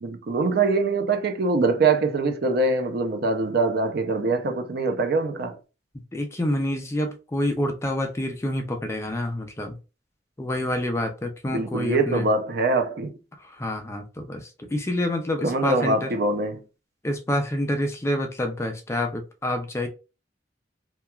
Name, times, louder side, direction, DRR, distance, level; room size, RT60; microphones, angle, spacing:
voice 1, 0.0-5.6 11.5-13.1 15.4-16.6, right 3 dB, 60° right, 0.5 m, -23 dB
voice 2, 6.1-9.7 10.4-12.2 13.4-16.1 17.0-19.9, left 1 dB, 15° left, 0.4 m, -27 dB
3.0 x 2.3 x 2.3 m
head